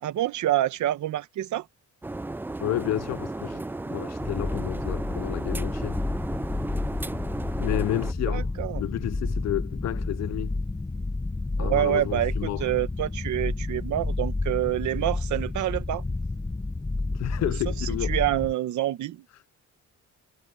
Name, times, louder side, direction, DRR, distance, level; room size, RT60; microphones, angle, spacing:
voice 1, 0.0-1.7 8.3-8.8 11.6-16.0 18.1-19.2, right 13 dB, 75° right, 1.1 m, -27 dB
sound 1, 2.0-8.1, right 2 dB, 5° right, 0.3 m, -34 dB
voice 2, 2.6-6.0 7.6-8.5 8.7-10.6 11.6-12.7 17.1-18.2 19.3-19.4, left 14 dB, 60° left, 0.5 m, -31 dB
sound 2, 4.2-18.5, left 2 dB, 15° left, 1.3 m, -30 dB
cardioid pair, 90°, 30 cm